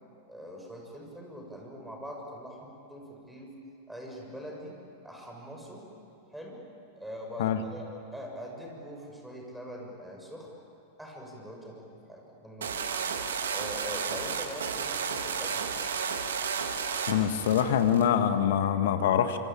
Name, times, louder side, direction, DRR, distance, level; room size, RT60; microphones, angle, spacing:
voice 1, 0.3-3.5 3.9-4.8 5.0-5.8 6.3-6.6 7.0-7.9 8.1-10.5 11.0-13.1 13.5-15.9, equal, 5° right, 0 dB, 6.8 m, -43 dB
sound 1, 12.6-18.1, right 6 dB, 65° right, 1.9 m, -32 dB
voice 2, 17.1-19.4, left 9 dB, 55° left, 9 dB, 1.7 m, -24 dB
26.5 x 25.5 x 8.9 m, 2.6 s
figure-of-eight pair, 90°, 0 cm